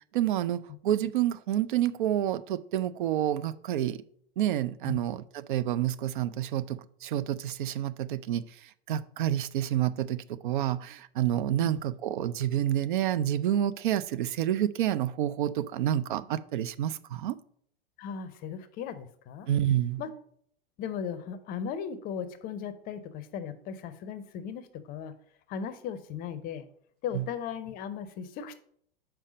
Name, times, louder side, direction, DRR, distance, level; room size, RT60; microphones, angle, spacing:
voice 1, 0.1-4.0 4.4-17.4 19.5-20.0 27.1-27.2, right 11 dB, 55° right, 15 dB, 0.4 m, -29 dB
voice 2, 18.0-19.5 20.0-20.1 20.8-25.1 25.5-26.7 27.0-28.5, left 7 dB, 30° left, 12 dB, 0.6 m, -37 dB
5.4 x 4.5 x 4.9 m, 0.64 s
figure-of-eight pair, 95°, 30 cm